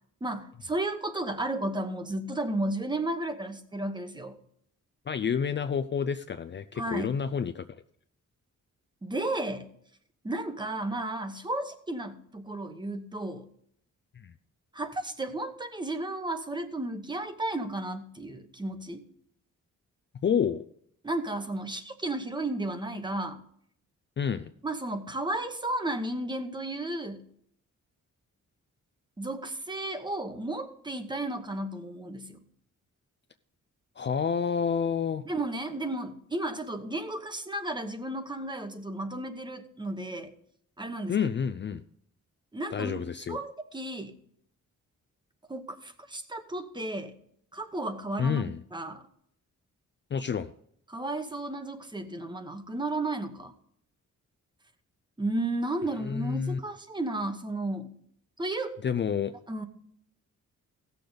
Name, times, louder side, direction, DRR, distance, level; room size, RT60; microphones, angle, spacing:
voice 1, 0.2-4.4 6.8-7.2 9.0-9.7 10.2-13.5 14.7-19.0 21.0-23.4 24.6-27.3 29.2-32.4 35.2-40.3 40.8-41.2 42.5-43.0 43.3-44.2 45.5-47.1 47.5-49.1 50.9-53.5 55.2-57.9 58.4-58.8 59.5-59.7, right 2 dB, 15° right, 8 dB, 1.0 m, -33 dB
voice 2, 5.1-7.6 14.2-14.3 20.2-20.6 24.2-24.5 34.0-35.2 41.1-41.8 42.7-43.4 48.2-48.6 50.1-50.5 56.0-56.6 58.8-59.3, left 7 dB, 35° left, 10 dB, 0.4 m, -29 dB
16.5 x 6.8 x 3.9 m, 0.67 s
wide cardioid pair, 160°, 31 cm